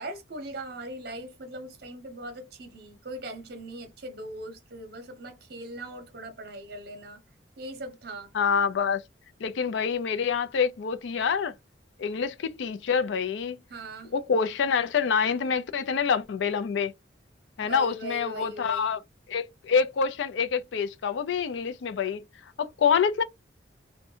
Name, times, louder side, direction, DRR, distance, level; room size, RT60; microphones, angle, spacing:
voice 1, 0.0-7.2 7.6-8.3 13.7-14.1 17.6-18.9, right 1 dB, 55° right, 0.7 m, -40 dB
voice 2, 8.3-9.0 9.4-11.5 12.0-13.6 14.1-16.9 17.6-19.0 19.3-22.2 22.6-23.2, left 6 dB, 75° left, 0.4 m, -26 dB
2.6 x 2.2 x 2.7 m
head